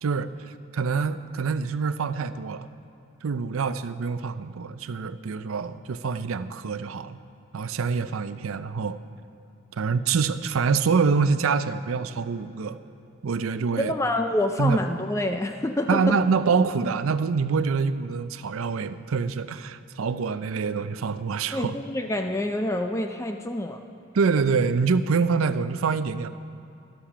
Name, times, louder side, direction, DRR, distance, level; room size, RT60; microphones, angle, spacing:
voice 1, 0.0-0.3 0.7-2.7 3.2-7.2 7.5-9.0 9.8-12.8 13.2-13.9 14.6-14.8 15.9-21.8 24.1-26.3, right 5 dB, 85° right, 13 dB, 0.5 m, -25 dB
voice 2, 13.8-16.2 21.5-23.8, left 1 dB, 15° left, 6 dB, 0.3 m, -27 dB
13.0 x 12.0 x 5.0 m, 2.7 s
head